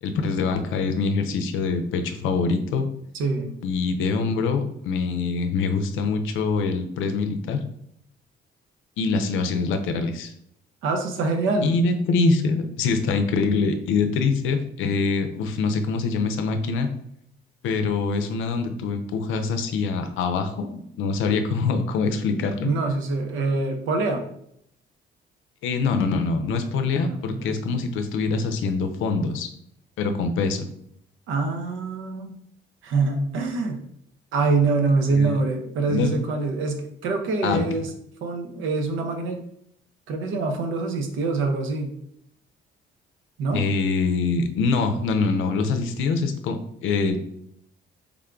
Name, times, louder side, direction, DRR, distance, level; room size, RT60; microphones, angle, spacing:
voice 1, 0.0-2.9 3.6-7.6 9.0-10.3 11.6-16.9 17.6-22.7 25.6-29.5 30.0-30.7 35.1-35.4 35.9-36.1 37.4-37.6 43.5-47.2, left 4 dB, 85° left, 8 dB, 0.5 m, -24 dB
voice 2, 3.1-3.5 10.8-11.8 22.6-24.2 27.0-27.5 31.3-32.3 32.8-33.8 34.3-37.9 38.2-39.4 40.1-41.9 43.4-43.6, right 3 dB, 85° right, 4 dB, 0.7 m, -25 dB
3.5 x 2.3 x 3.6 m, 0.71 s
cardioid pair, 90°, 20 cm